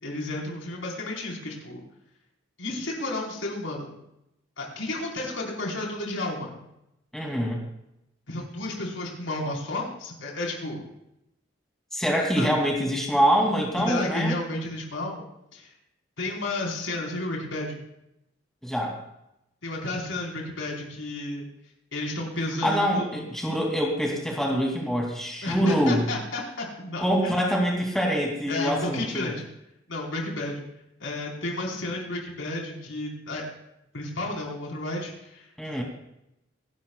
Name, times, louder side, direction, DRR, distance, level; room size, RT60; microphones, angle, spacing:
voice 1, 0.0-1.8 2.6-3.9 4.6-6.6 8.3-10.8 12.4-12.6 13.8-15.3 15.5-15.7 16.2-17.8 19.6-21.5 21.9-23.2 25.4-27.3 28.5-29.4 29.9-30.6 31.0-33.4 33.9-35.5, left 2 dB, 80° left, -2 dB, 4.4 m, -32 dB
voice 2, 7.1-7.6 11.9-14.3 18.6-19.0 22.6-26.1 27.0-29.3 35.6-35.8, equal, ahead, -1 dB, 2.7 m, -25 dB
25.5 x 12.5 x 2.4 m, 0.83 s
head